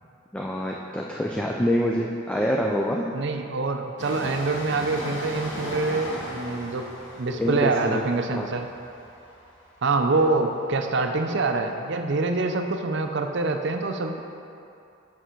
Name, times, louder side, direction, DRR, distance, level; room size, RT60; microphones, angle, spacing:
voice 1, 0.3-3.1 7.4-8.0 8.3-8.5, equal, 5° left, -1 dB, 0.3 m, -26 dB
voice 2, 3.1-6.9 7.2-8.7 9.8-14.2, right 3 dB, 60° right, 5 dB, 0.5 m, -25 dB
Train, 4.0-11.4 11.7-11.8, equal, 60° left, 1.2 m, -38 dB
6.8 x 6.1 x 4.5 m, 2.6 s
head